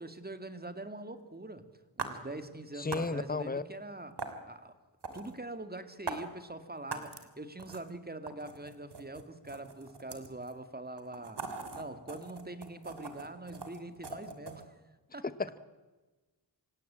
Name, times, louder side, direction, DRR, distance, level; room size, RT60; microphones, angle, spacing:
voice 1, 0.0-1.7 2.0-4.7 5.1-14.7 15.1-15.2, right 2 dB, 20° right, 2.3 m, -44 dB
sound 1, 2.0-2.1 2.9-3.1 4.2-4.3 5.0-5.3 6.1-6.2 6.9-7.2 7.6-7.9 8.3-10.5 11.0-14.6, right 4 dB, 70° right, 2.9 m, -41 dB
voice 2, 2.8-3.6 15.2-15.6, left 3 dB, 20° left, 1.1 m, -33 dB
26.5 x 17.0 x 8.7 m
wide cardioid pair, 75°, 42 cm